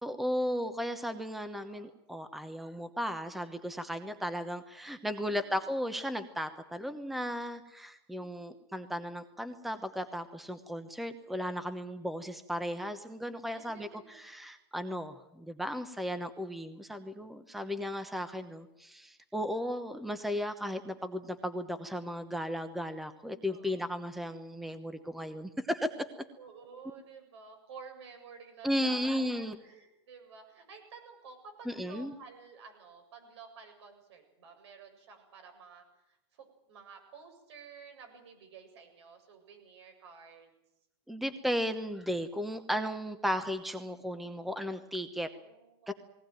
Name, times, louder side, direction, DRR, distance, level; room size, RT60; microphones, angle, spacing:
voice 1, 0.0-26.1 28.6-29.5 31.7-32.1 41.1-45.3 45.9-46.0, equal, ahead, 11 dB, 1.0 m, -35 dB
voice 2, 1.6-1.9 5.2-5.8 8.1-8.6 13.5-14.2 23.5-23.8 25.1-25.2 26.4-40.5 45.2-45.9, right 5 dB, 75° right, 5 dB, 7.5 m, -52 dB
20.0 x 18.5 x 9.2 m, 0.88 s
supercardioid pair, 155°, 14 cm